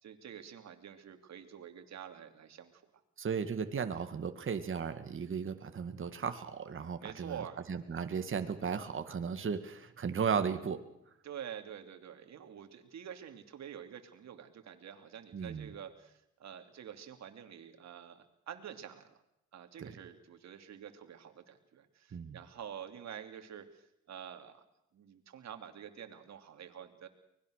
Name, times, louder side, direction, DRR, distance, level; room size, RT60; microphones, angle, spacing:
voice 1, 0.0-2.8 7.0-7.6 11.2-19.2 19.5-24.6 24.9-27.1, right 8 dB, 60° right, 6 dB, 3.0 m, -48 dB
voice 2, 3.2-7.4 7.7-10.8 15.3-15.7 19.8-19.9 22.1-22.4, right 6 dB, 40° right, 8 dB, 1.9 m, -35 dB
24.5 x 20.0 x 6.6 m, 0.81 s
cardioid pair, 90°, 30 cm